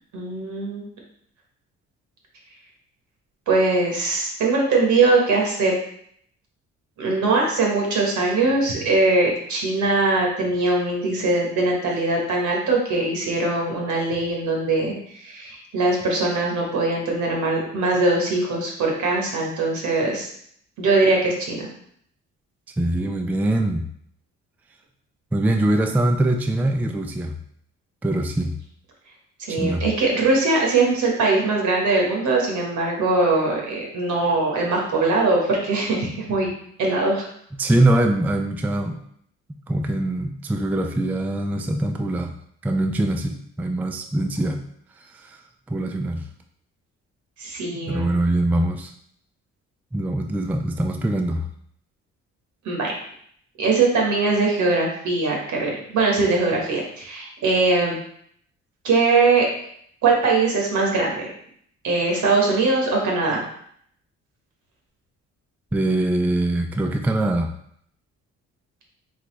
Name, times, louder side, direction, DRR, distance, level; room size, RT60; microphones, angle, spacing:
voice 1, 0.1-0.9 3.5-5.7 7.0-20.3 20.8-21.7 29.4-36.5 36.8-37.3 47.4-48.1 52.6-52.9 53.6-58.0 58.8-59.5 60.0-61.3 61.8-63.4, right 3 dB, 70° right, -1 dB, 1.4 m, -21 dB
voice 2, 22.8-23.9 25.3-27.4 28.0-28.6 29.5-29.8 37.6-39.0 39.7-42.3 42.6-44.6 45.1-45.4 45.7-46.2 47.9-48.9 49.9-51.4 65.7-67.5, right 1 dB, 5° right, 4 dB, 0.3 m, -23 dB
3.9 x 3.3 x 3.2 m, 0.66 s
cardioid pair, 90°, 30 cm